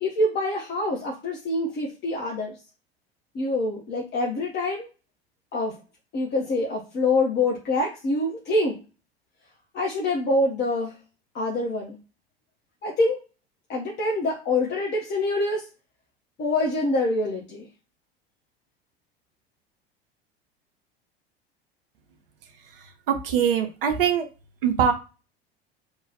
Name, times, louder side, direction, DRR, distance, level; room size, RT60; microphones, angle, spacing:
voice 1, 0.0-2.6 3.3-4.9 5.5-5.7 6.1-8.8 9.7-10.9 11.3-12.0 12.8-13.2 13.7-15.6 16.4-17.7, left 2 dB, 35° left, -2 dB, 1.0 m, -25 dB
voice 2, 22.7-24.3 24.6-24.9, right 8 dB, 65° right, 5 dB, 0.8 m, -23 dB
3.0 x 2.4 x 4.0 m, 0.32 s
figure-of-eight pair, 75°, 31 cm